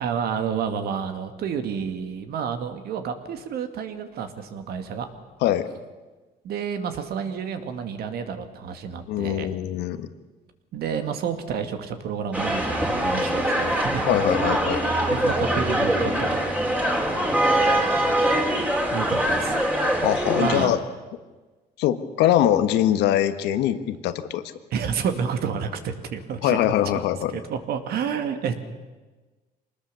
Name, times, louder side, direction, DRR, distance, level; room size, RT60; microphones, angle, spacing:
voice 1, 0.0-5.1 6.4-9.5 10.7-14.1 15.1-16.5 18.9-19.6 20.3-20.8 24.7-26.6 27.3-28.6, right 7 dB, 70° right, 7 dB, 2.3 m, -30 dB
voice 2, 9.1-10.1 14.1-14.8 20.0-20.8 21.8-24.4 26.4-27.4, left 12 dB, 85° left, 11 dB, 1.4 m, -22 dB
sound 1, 12.3-20.7, right 1 dB, 10° right, 3.6 m, -23 dB
25.0 x 20.0 x 7.0 m, 1.3 s
cardioid pair, 110°, 17 cm